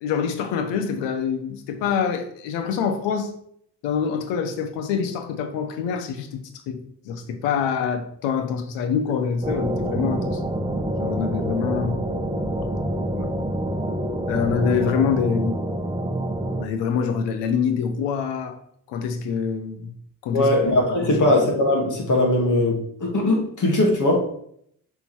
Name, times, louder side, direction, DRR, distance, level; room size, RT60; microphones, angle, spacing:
voice 1, 0.0-3.3 3.8-10.4 11.0-12.0 13.1-13.3 14.3-15.6 16.6-18.6 18.9-19.9 20.2-20.5 21.0-21.2, left 6 dB, 85° left, 7 dB, 1.1 m, -25 dB
sound 1, 9.4-16.6, right 1 dB, 10° right, 1.0 m, -27 dB
voice 2, 20.3-24.3, left 1 dB, 45° left, 0 dB, 2.6 m, -20 dB
7.0 x 4.4 x 4.5 m, 0.66 s
supercardioid pair, 65°, 41 cm